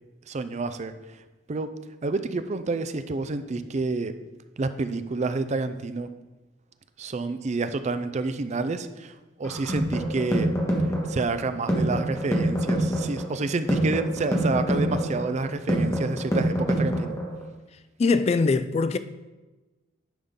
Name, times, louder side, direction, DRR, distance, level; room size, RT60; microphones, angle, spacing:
voice 1, 0.3-0.9 1.5-1.7 2.0-4.1 4.6-6.1 7.0-10.5 11.1-17.1, right 3 dB, 35° right, 0.4 m, -29 dB
sound 1, 9.4-17.4, equal, 15° left, 1.4 m, -26 dB
voice 2, 18.0-19.0, left 4 dB, 35° left, 0.3 m, -22 dB
10.5 x 5.6 x 3.7 m
head